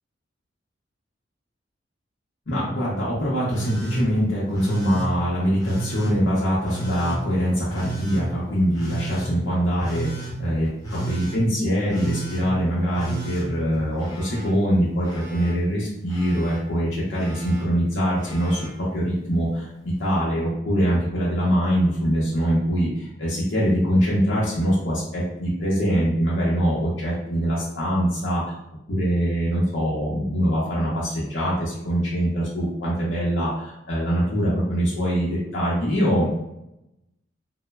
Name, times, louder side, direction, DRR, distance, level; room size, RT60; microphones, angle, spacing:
voice 1, 2.5-10.1 10.4-28.5 28.9-36.3, equal, 85° left, -7 dB, 0.6 m, -23 dB
Telephone, 3.5-4.0 4.5-5.1 5.6-6.1 6.6-7.2 7.7-8.2 8.7-9.3 9.8-10.3 10.8-11.4 11.9-12.4 12.9-14.5 14.8-15.5 16.1-16.6 17.1-17.6 18.2-18.7 19.9-20.0, right 3 dB, 20° left, 0.7 m, -33 dB
3.0 x 2.0 x 2.2 m, 0.88 s
head